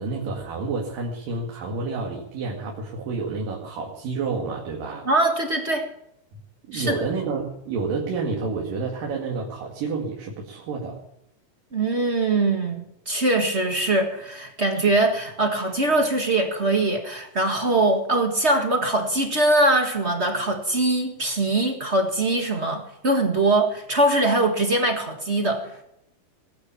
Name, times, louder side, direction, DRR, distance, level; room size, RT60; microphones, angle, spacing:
voice 1, 0.0-5.1 6.7-11.0, right 4 dB, 90° right, -1 dB, 3.9 m, -29 dB
voice 2, 5.0-5.9 6.7-7.0 11.7-25.7, right 2 dB, 35° right, 4 dB, 1.1 m, -22 dB
20.0 x 9.0 x 7.1 m, 0.79 s
omnidirectional pair, 3.8 m